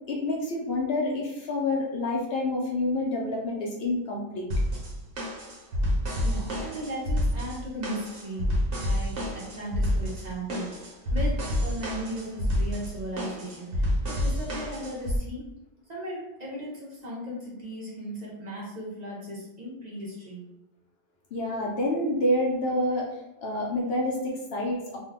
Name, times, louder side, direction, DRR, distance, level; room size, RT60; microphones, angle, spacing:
voice 1, 0.1-4.5 21.3-23.1 23.4-25.0, left 1 dB, 60° left, -2 dB, 0.8 m, -28 dB
sound 1, 4.5-15.2, left 1 dB, 75° right, 1.1 m, -28 dB
voice 2, 6.2-9.1 9.5-10.7 11.1-15.4 15.9-20.4, right 1 dB, 40° right, -6 dB, 0.9 m, -37 dB
2.6 x 2.2 x 3.5 m, 0.89 s
omnidirectional pair, 1.2 m